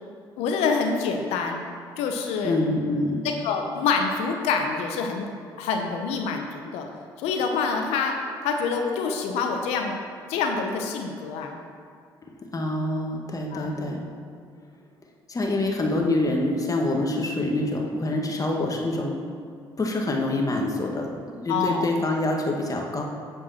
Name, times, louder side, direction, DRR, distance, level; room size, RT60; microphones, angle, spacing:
voice 1, 0.4-1.6 2.0-2.6 3.4-5.3 5.6-6.9 7.2-10.0 10.3-11.6 13.5-13.7 21.5-21.9, left 5 dB, 80° left, 3 dB, 0.8 m, -26 dB
voice 2, 2.4-3.2 12.5-14.0 15.3-19.2 19.8-21.1 21.3-23.0, left 2 dB, 30° left, 1 dB, 1.6 m, -26 dB
8.9 x 4.6 x 5.7 m, 2.3 s
hypercardioid pair, 55°, 11 cm